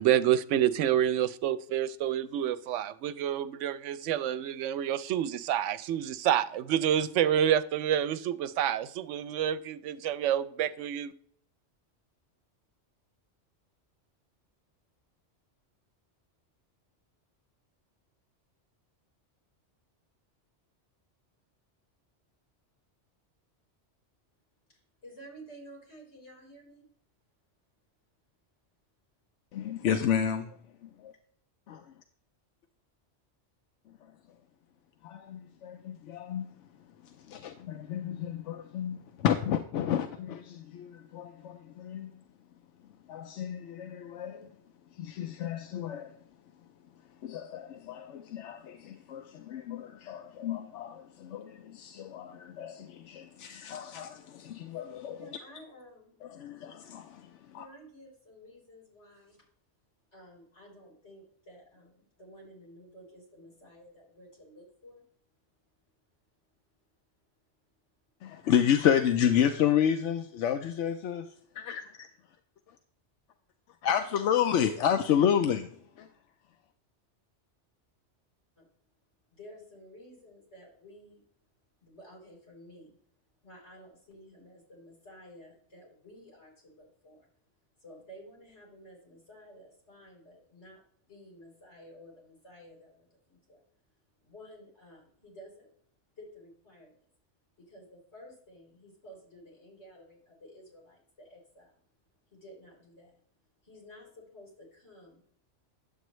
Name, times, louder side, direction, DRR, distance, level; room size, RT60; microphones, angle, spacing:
voice 1, 0.0-11.1, right 10 dB, 90° right, 0.9 m, -28 dB
voice 2, 24.7-26.8 55.2-56.2 57.5-59.5 60.1-65.0 78.6-78.7 79.3-81.2 81.8-82.9 83.4-87.3 87.8-93.6 94.2-95.7 96.2-97.0 97.6-101.8 102.3-103.2 103.6-105.2, equal, 65° left, 4.3 m, -53 dB
voice 3, 29.5-30.6 30.8-31.1 31.7-31.8 35.0-36.5 37.0-42.1 43.1-44.5 45.0-46.1 47.2-55.2 56.3-57.7 68.2-71.3 71.5-72.1 73.8-75.7 76.0-76.1, left 9 dB, 85° left, 0.9 m, -30 dB
10.0 x 7.7 x 3.1 m
omnidirectional pair, 1.2 m